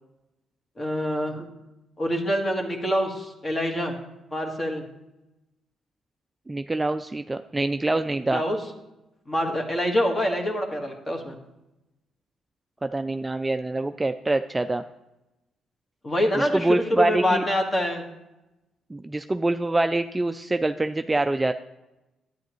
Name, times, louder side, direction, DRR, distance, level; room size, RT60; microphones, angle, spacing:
voice 1, 0.8-1.5 2.0-3.9 4.3-4.9 8.3-8.6 9.3-11.4 16.0-18.1, equal, 25° left, 3 dB, 1.5 m, -25 dB
voice 2, 6.5-8.4 12.8-14.8 16.3-17.5 18.9-21.5, right 2 dB, 15° right, 8 dB, 0.3 m, -25 dB
11.0 x 9.1 x 3.1 m, 0.96 s
cardioid pair, 90°, 0 cm